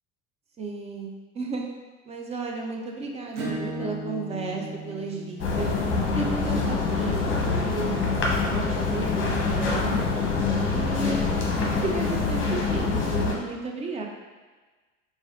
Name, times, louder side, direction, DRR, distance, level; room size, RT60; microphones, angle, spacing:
voice 1, 0.6-1.7 2.1-5.7 6.1-8.0 8.5-10.1 10.7-14.0, right 3 dB, 15° right, 1 dB, 0.4 m, -33 dB
Acoustic guitar / Strum, 3.3-8.6, right 2 dB, 70° right, 0.9 m, -38 dB
sound 1, 5.4-13.3, left 4 dB, 30° left, 0.8 m, -25 dB
4.0 x 2.4 x 3.5 m, 1.3 s
figure-of-eight pair, 70°, 39 cm